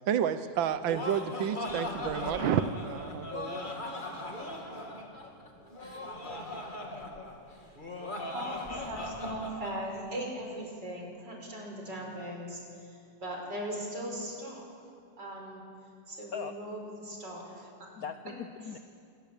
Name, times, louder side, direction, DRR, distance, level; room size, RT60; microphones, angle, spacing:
voice 1, 0.1-3.7, right 8 dB, 85° right, 11 dB, 1.7 m, -30 dB
Laughter, 0.6-9.7, left 1 dB, 25° left, 2.8 m, -39 dB
voice 2, 6.0-6.6 16.3-16.6 17.5-18.8, left 7 dB, 60° left, 9 dB, 1.2 m, -42 dB
voice 3, 8.3-14.6 15.2-15.6 16.1-17.7, right 1 dB, 65° right, 0 dB, 6.2 m, -39 dB
27.0 x 22.0 x 8.4 m, 2.5 s
omnidirectional pair, 2.1 m